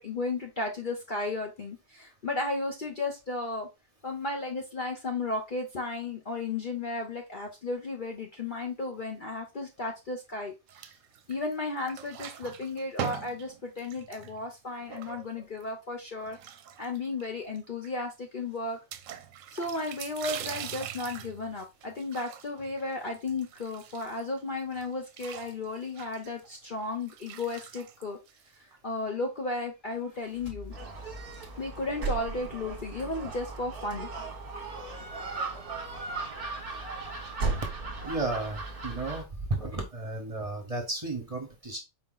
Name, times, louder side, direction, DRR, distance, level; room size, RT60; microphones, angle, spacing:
voice 1, 0.0-3.7 4.0-10.9 11.3-16.4 16.8-18.8 19.5-28.2 28.6-30.7 31.6-34.1, left 3 dB, 45° left, 1 dB, 0.8 m, -34 dB
sound 1, 10.7-11.5 11.8-15.6 16.2-17.2 17.5-17.6 17.8-17.9 18.9-24.4 24.7-28.7, right 9 dB, 75° right, 0.9 m, -42 dB
sound 2, 29.9-33.2, left 1 dB, 70° left, 2.4 m, -50 dB
Gull seagull, 30.7-39.2, right 3 dB, 45° right, 1.2 m, -36 dB
voice 2, 38.0-41.8, right 2 dB, 30° right, 2 dB, 1.1 m, -33 dB
4.8 x 2.9 x 3.7 m, 0.24 s
omnidirectional pair, 1.4 m